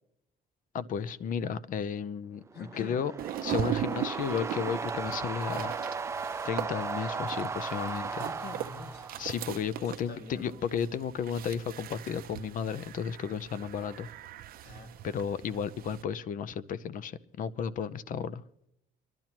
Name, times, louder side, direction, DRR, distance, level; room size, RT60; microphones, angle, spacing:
voice 1, 0.7-2.4 2.8-3.1 3.4-5.7 6.4-8.3 9.2-14.1 15.0-18.4, left 7 dB, 55° left, 17 dB, 0.7 m, -33 dB
voice 2, 2.5-3.0 8.2-9.1 9.8-10.6 14.6-15.1, left 3 dB, 70° left, 5 dB, 2.1 m, -45 dB
sound 1, 2.5-9.6, right 4 dB, 15° right, 0.4 m, -36 dB
sound 2, 3.2-16.0, right 12 dB, 60° right, 0.6 m, -39 dB
24.0 x 12.0 x 3.0 m, 0.81 s
cardioid pair, 110°, 17 cm